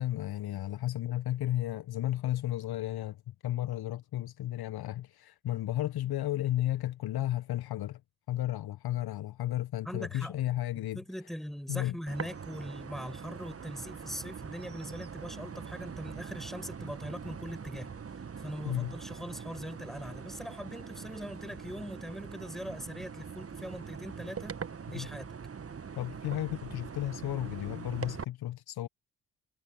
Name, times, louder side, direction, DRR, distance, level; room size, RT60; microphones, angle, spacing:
voice 1, 0.0-8.0 8.3-11.0 11.7-11.9 18.7-18.9 24.9-25.1 26.0-28.9, left 14 dB, 50° left, 1.3 m, -33 dB
voice 2, 9.8-10.4 10.9-17.9 18.4-24.6 24.9-25.3, equal, ahead, 6.3 m, -41 dB
sound 1, 12.1-28.2, right 6 dB, 30° right, 1.7 m, -43 dB
figure-of-eight pair, 45°, 46 cm